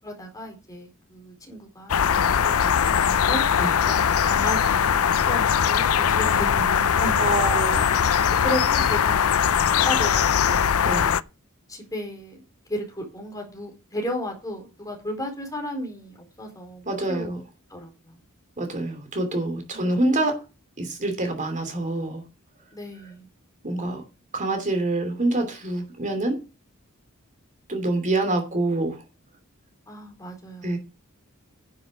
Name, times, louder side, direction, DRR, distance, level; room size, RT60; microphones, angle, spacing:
voice 1, 0.0-3.5 3.8-7.2 8.4-10.8 11.7-12.4 12.7-17.3 17.7-18.2 19.7-20.0 22.7-23.3 29.9-30.8, equal, 15° left, 2 dB, 4.4 m, -34 dB
sound 1, 1.9-11.2, left 8 dB, 80° left, 0.5 m, -21 dB
voice 2, 6.9-8.1 10.8-11.1 16.9-17.4 18.6-20.4 20.8-22.2 23.6-24.0 24.3-26.4 27.7-29.0 30.6-30.8, right 2 dB, 35° right, 5 dB, 2.9 m, -26 dB
10.5 x 7.6 x 6.5 m, 0.30 s
head